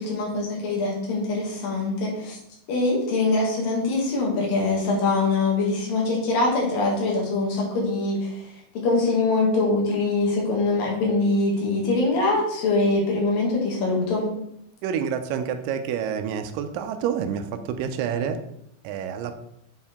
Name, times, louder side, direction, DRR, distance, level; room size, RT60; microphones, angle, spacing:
voice 1, 0.0-2.4 2.7-8.5 8.7-14.3, left 3 dB, 85° left, -2 dB, 3.4 m, -23 dB
voice 2, 14.8-18.4 18.8-19.3, right 8 dB, 85° right, 8 dB, 2.2 m, -28 dB
7.4 x 4.5 x 3.5 m, 0.78 s
omnidirectional pair, 3.8 m